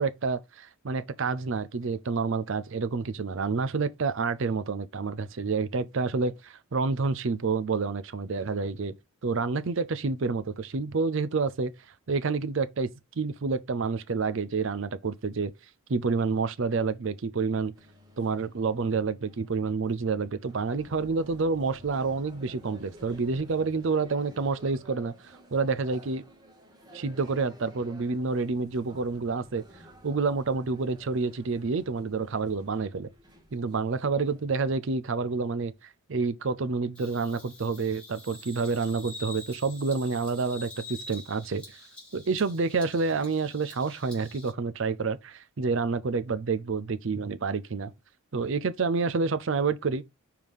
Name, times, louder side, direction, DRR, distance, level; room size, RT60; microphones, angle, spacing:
voice 1, 0.0-8.9 9.2-11.7 12.1-12.9 13.2-15.5 15.9-17.7 18.2-26.2 26.9-29.6 30.0-33.1 33.5-41.8 42.1-47.9 48.3-50.0, right 4 dB, 60° right, 0.5 m, -28 dB
sound 1, 17.7-34.5, equal, 20° right, 1.7 m, -52 dB
Bird vocalization bird call bird song, 36.9-44.5, left 2 dB, 5° left, 2.6 m, -46 dB
5.2 x 4.8 x 5.4 m
head